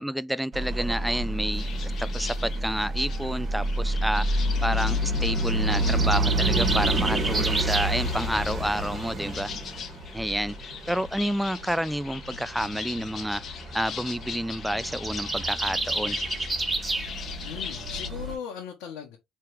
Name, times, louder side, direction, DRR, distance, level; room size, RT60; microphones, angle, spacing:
voice 1, 0.0-9.5 10.1-13.4 13.7-16.2, equal, 5° right, 0.3 m, -29 dB
sound 1, 0.5-18.4, right 1 dB, 40° right, 2.6 m, -30 dB
sound 2, 1.6-18.1, left 7 dB, 50° left, 0.9 m, -41 dB
sound 3, 5.6-8.0 14.6-17.1, right 2 dB, 20° right, 1.4 m, -29 dB
voice 2, 17.4-19.2, left 8 dB, 75° left, 1.2 m, -38 dB
4.5 x 3.3 x 3.3 m
hypercardioid pair, 65°, 0 cm